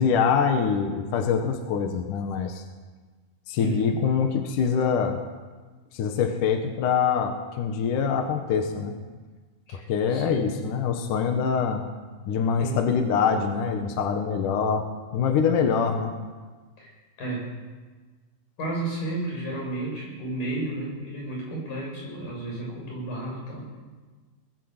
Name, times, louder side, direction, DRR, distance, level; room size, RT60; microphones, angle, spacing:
voice 1, 0.0-2.6 3.5-5.2 5.9-8.9 9.7-11.8 12.3-14.9 15.1-16.1, left 6 dB, 60° left, 5 dB, 2.2 m, -24 dB
voice 2, 3.6-4.0 9.7-10.5 12.6-12.9 16.8-17.5 18.6-23.8, right 1 dB, 45° left, -2 dB, 8.9 m, -33 dB
21.5 x 20.0 x 8.1 m, 1.4 s
omnidirectional pair, 5.4 m